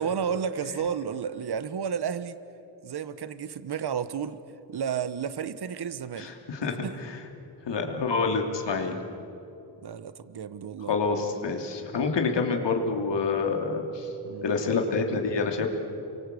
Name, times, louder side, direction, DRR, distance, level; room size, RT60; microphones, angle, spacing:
voice 1, 0.0-2.4 2.8-4.4 4.7-6.3 6.8-7.0 9.8-10.9 14.2-14.5, right 7 dB, 65° right, 14 dB, 1.2 m, -32 dB
voice 2, 6.2-7.1 7.7-9.0 10.9-14.1 14.4-15.7, left 4 dB, 80° left, 3 dB, 3.3 m, -27 dB
29.0 x 24.0 x 8.5 m, 2.9 s
cardioid pair, 70°, 42 cm